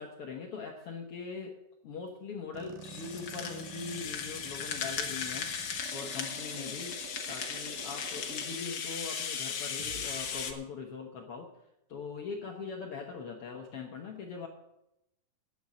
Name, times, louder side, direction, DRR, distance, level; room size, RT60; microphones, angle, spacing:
voice 1, 0.0-1.5 1.8-5.5 5.9-7.0 7.3-11.5 11.9-14.5, left 5 dB, 90° left, 0 dB, 1.2 m, -41 dB
sound 1, 2.5-10.5, right 6 dB, 70° right, 2.2 m, -49 dB
Rattle (instrument), 2.8-10.5, left 7 dB, 65° left, 1.5 m, -37 dB
10.5 x 8.0 x 8.4 m, 0.87 s
omnidirectional pair, 4.5 m